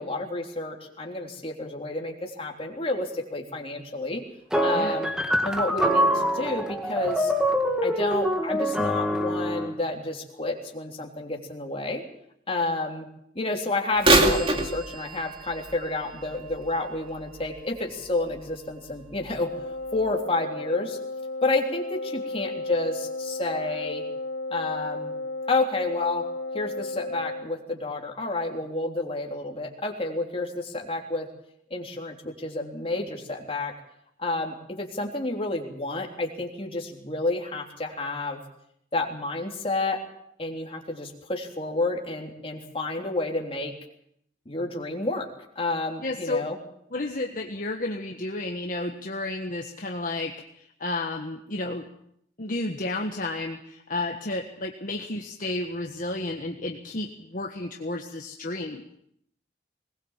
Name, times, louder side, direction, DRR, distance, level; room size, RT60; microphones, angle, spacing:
voice 1, 0.0-4.2 4.6-5.1 5.4-7.3 7.8-12.0 12.5-13.1 13.3-19.5 19.9-21.0 21.4-24.0 24.5-25.1 25.5-26.3 26.5-31.3 31.7-33.7 34.2-38.4 38.9-40.0 40.4-43.7 44.4-45.3 45.5-46.6, left 2 dB, 35° left, 1 dB, 3.3 m, -30 dB
sound 1, 4.5-9.7, equal, 5° right, 1.9 m, -25 dB
Bird vocalization bird call bird song / Telephone, 14.0-17.8 18.4-18.5 19.3-19.4 20.0-20.1, right 2 dB, 30° right, 2.3 m, -26 dB
Wind instrument woodwind instrument, 19.3-27.5, left 2 dB, 70° left, 2.3 m, -34 dB
voice 2, 46.0-46.5 46.9-51.8 52.4-58.8, left 2 dB, 50° left, 2 dB, 1.5 m, -32 dB
20.5 x 20.0 x 7.4 m, 0.72 s
head